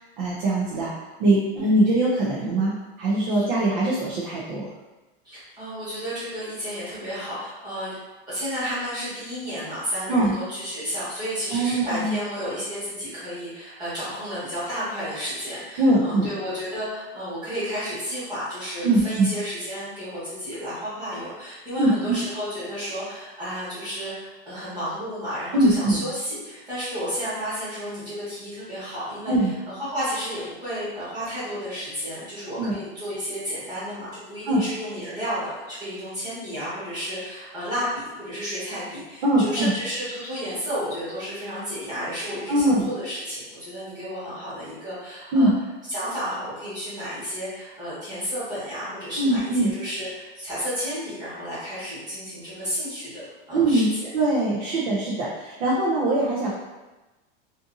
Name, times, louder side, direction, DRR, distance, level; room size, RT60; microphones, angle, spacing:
voice 1, 0.2-0.9 1.2-4.7 10.1-10.3 11.5-12.2 15.8-16.3 18.8-19.3 21.8-22.2 25.5-26.0 29.3-29.5 32.6-32.8 34.5-34.6 39.2-39.7 42.5-42.9 45.3-45.5 49.2-49.7 53.5-53.9 54.1-56.5, right 1 dB, 45° right, -5 dB, 0.5 m, -22 dB
voice 2, 5.2-8.0 8.3-45.5 45.9-53.1 53.5-54.1, equal, 15° right, -12 dB, 1.1 m, -32 dB
2.6 x 2.5 x 2.5 m, 1.1 s
supercardioid pair, 175°, 30 cm